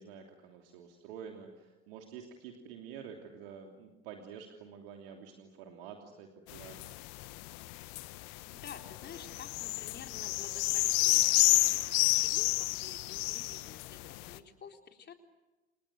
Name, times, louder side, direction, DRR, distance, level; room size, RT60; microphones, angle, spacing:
voice 1, 0.0-7.0, right 7 dB, 60° right, 3 dB, 3.1 m, -48 dB
sound 1, 6.5-14.4, left 21 dB, 50° left, 1.3 m, -30 dB
voice 2, 8.5-15.1, left 6 dB, 30° left, 5 dB, 3.9 m, -51 dB
29.5 x 29.0 x 6.4 m, 1.1 s
figure-of-eight pair, 65°, 33 cm